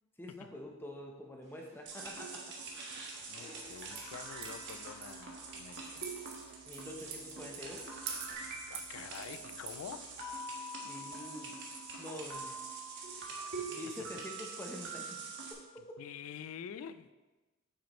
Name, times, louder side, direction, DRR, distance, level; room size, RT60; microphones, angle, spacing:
voice 1, 0.2-2.4 6.7-7.9 10.8-11.6 12.0-12.6 13.7-15.2 15.7-15.8, left 1 dB, 10° left, 0 dB, 0.7 m, -46 dB
sound 1, 1.4-8.3, equal, 35° right, 1.3 m, -62 dB
sound 2, 1.9-15.5, right 3 dB, 60° right, 1.3 m, -44 dB
voice 2, 3.3-6.1 8.7-10.1 13.4-13.8 16.0-17.1, left 7 dB, 80° left, 12 dB, 0.3 m, -47 dB
sound 3, 3.6-10.3, right 6 dB, 85° right, 1.1 m, -48 dB
8.1 x 6.3 x 3.0 m, 1.2 s
head